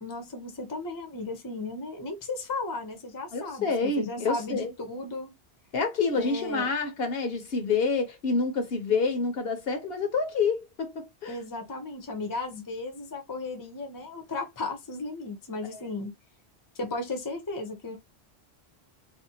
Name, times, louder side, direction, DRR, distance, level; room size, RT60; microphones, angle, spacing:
voice 1, 0.0-5.3 6.2-6.7 11.3-16.1 16.8-18.0, left 3 dB, 25° left, 0.5 m, -35 dB
voice 2, 3.3-4.7 5.7-11.4, left 4 dB, 65° left, 0.9 m, -28 dB
2.7 x 2.0 x 2.7 m
omnidirectional pair, 1.1 m